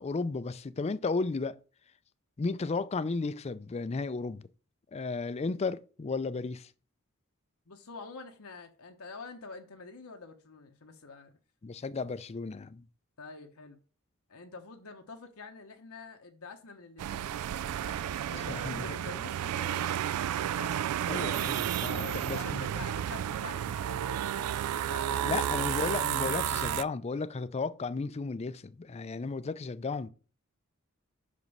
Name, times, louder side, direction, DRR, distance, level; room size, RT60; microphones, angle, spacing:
voice 1, 0.0-1.6 2.4-4.5 4.9-6.7 11.6-12.8 18.5-18.8 21.1-22.6 25.2-30.1, left 4 dB, 30° left, 0.4 m, -34 dB
voice 2, 7.7-11.3 13.2-13.8 14.3-17.4 18.2-20.0 20.6-20.8 21.9-25.7, left 4 dB, 80° left, 1.0 m, -47 dB
sound 1, 17.0-26.8, right 10 dB, 90° right, 0.3 m, -32 dB
Gunshot gunfire, 17.6-18.8, right 3 dB, 50° right, 1.2 m, -54 dB
6.0 x 5.2 x 5.4 m
head